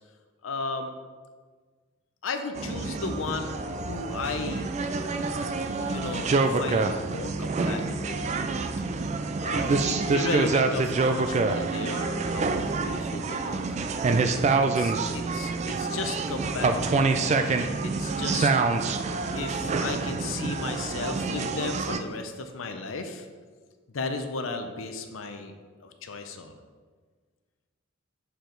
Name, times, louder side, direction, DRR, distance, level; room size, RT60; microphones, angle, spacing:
voice 1, 0.4-0.9 2.2-4.7 5.8-8.7 9.4-13.8 14.6-17.6 17.8-18.5 19.3-23.3 23.9-25.5 25.8-26.6, left 3 dB, 75° left, 7 dB, 0.6 m, -35 dB
sound 1, 2.6-22.0, right 3 dB, 35° right, 0.3 m, -27 dB
6.8 x 4.6 x 3.8 m, 1.5 s
head